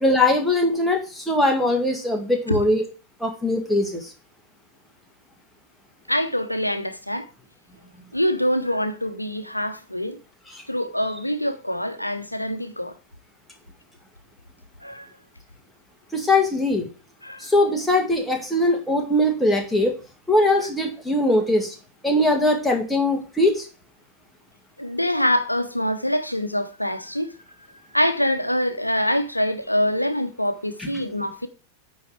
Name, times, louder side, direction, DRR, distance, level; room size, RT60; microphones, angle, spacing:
voice 1, 0.0-2.8 3.2-4.1 16.1-16.9 17.4-19.9 20.3-21.7 22.0-23.6, left 1 dB, 5° left, 2.0 m, -21 dB
voice 2, 6.1-7.3 8.1-10.2 10.7-12.9 14.8-15.1 17.2-17.5 20.6-20.7 24.8-27.3 27.9-31.5, equal, 85° left, 0.8 m, -25 dB
9.2 x 4.0 x 5.9 m
figure-of-eight pair, 90°, 0 cm